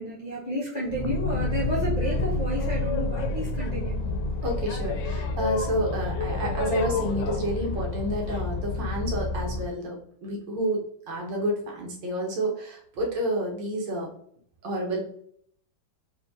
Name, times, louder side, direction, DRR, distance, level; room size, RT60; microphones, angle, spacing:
voice 1, 0.0-4.1, equal, 70° left, -5 dB, 0.4 m, -31 dB
Boat Water vehicle, 0.9-9.7, left 2 dB, 85° left, 1.3 m, -29 dB
voice 2, 4.4-14.1 14.6-15.1, equal, 75° right, 0 dB, 1.4 m, -29 dB
3.7 x 3.3 x 2.6 m, 0.63 s
omnidirectional pair, 2.1 m